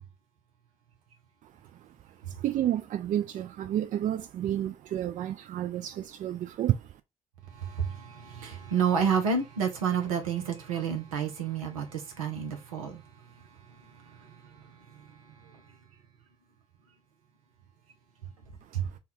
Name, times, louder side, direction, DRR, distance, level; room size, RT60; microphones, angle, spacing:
voice 1, 2.4-6.8, right 11 dB, 50° right, 0.5 m, -30 dB
voice 2, 7.5-13.0 14.0-15.1 15.5-15.6 18.7-18.9, right 6 dB, 80° right, 0.7 m, -30 dB
4.1 x 2.3 x 3.7 m
figure-of-eight pair, 45°, 17 cm